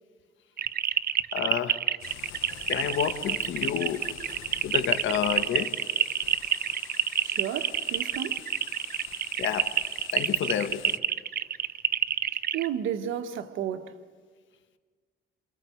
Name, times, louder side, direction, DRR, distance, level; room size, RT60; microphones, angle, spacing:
sound 1, 0.6-12.7, right 9 dB, 50° right, 0.8 m, -28 dB
voice 1, 1.3-1.8 2.7-4.1 4.6-5.8 9.4-9.7 10.1-11.0, left 9 dB, 70° left, 1.4 m, -29 dB
sound 2, 2.0-11.0, left 12 dB, 90° left, 1.0 m, -45 dB
voice 2, 7.2-8.4 12.5-13.9, right 9 dB, 85° right, 1.5 m, -32 dB
29.5 x 27.5 x 4.6 m
cardioid pair, 90°, 20 cm